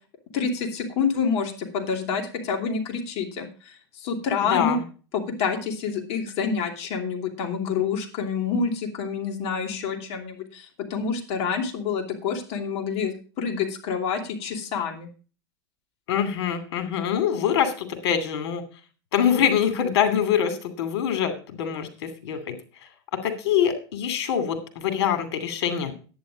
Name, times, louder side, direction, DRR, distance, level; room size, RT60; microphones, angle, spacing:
voice 1, 0.3-4.8 5.1-15.1, left 6 dB, 50° left, 3 dB, 2.9 m, -28 dB
voice 2, 4.5-4.8 16.1-18.6 19.1-22.5 23.1-25.9, left 8 dB, 70° left, 9 dB, 2.6 m, -24 dB
10.5 x 9.2 x 5.1 m, 0.37 s
hypercardioid pair, 120°, 14 cm